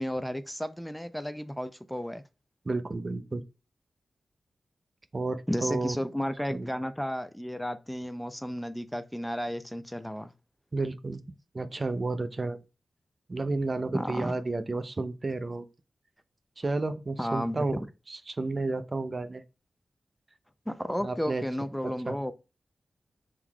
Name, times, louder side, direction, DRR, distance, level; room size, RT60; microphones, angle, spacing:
voice 1, 0.0-2.2 5.5-10.3 13.9-14.4 17.2-17.7 20.7-22.3, equal, 5° left, 0.5 m, -33 dB
voice 2, 2.7-3.4 5.1-6.0 6.5-6.7 10.7-11.2 11.5-12.6 13.3-15.7 16.6-19.4 21.0-21.4 22.1-22.2, right 3 dB, 45° right, 0.5 m, -31 dB
4.5 x 3.8 x 2.3 m
cardioid pair, 50°, 0 cm